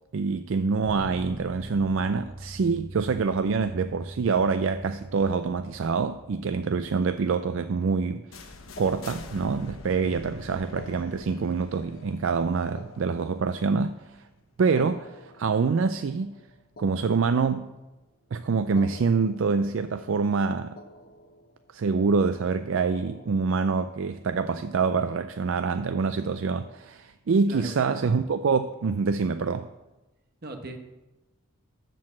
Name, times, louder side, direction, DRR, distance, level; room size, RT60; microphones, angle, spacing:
voice 1, 0.1-8.3 8.8-14.3 14.6-16.4 16.8-17.7 18.3-20.8 21.7-29.7, right 5 dB, 60° right, 10 dB, 0.4 m, -26 dB
Bass guitar, 0.8-7.1, right 1 dB, 10° right, 2.9 m, -42 dB
sound 1, 8.3-14.1, left 2 dB, 65° left, 1.1 m, -45 dB
sound 2, 8.8-10.0 10.6-14.0 14.6-17.9 18.6-20.5 20.8-21.8 22.6-24.5, left 2 dB, 45° left, 0.7 m, -49 dB
voice 2, 27.5-27.9 30.4-30.8, right 1 dB, 45° right, 5 dB, 1.2 m, -38 dB
13.0 x 4.7 x 7.4 m, 1.1 s
head